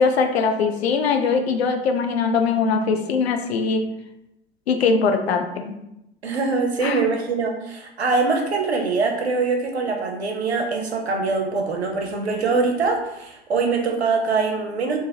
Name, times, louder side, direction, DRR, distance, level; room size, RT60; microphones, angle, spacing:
voice 1, 0.0-3.9 4.7-5.7 6.8-7.0, left 5 dB, 80° left, 5 dB, 0.5 m, -21 dB
voice 2, 6.2-15.0, right 4 dB, 90° right, 3 dB, 0.6 m, -23 dB
3.9 x 2.5 x 2.8 m, 0.88 s
figure-of-eight pair, 75°, 31 cm